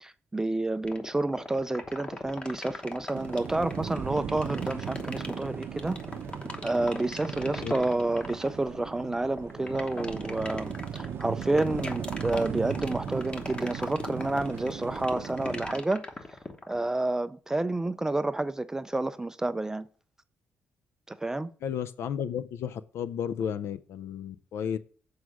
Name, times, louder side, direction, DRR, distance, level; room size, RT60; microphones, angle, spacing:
voice 1, 0.0-6.0 6.6-16.0 16.7-19.9 21.1-21.5, right 2 dB, 10° right, 0.3 m, -29 dB
sound 1, 0.8-16.8, left 2 dB, 25° left, 1.0 m, -38 dB
sound 2, 3.1-15.8, right 8 dB, 60° right, 0.6 m, -37 dB
voice 2, 21.6-24.8, left 8 dB, 75° left, 0.4 m, -33 dB
8.0 x 4.7 x 6.1 m
cardioid pair, 135°, 4 cm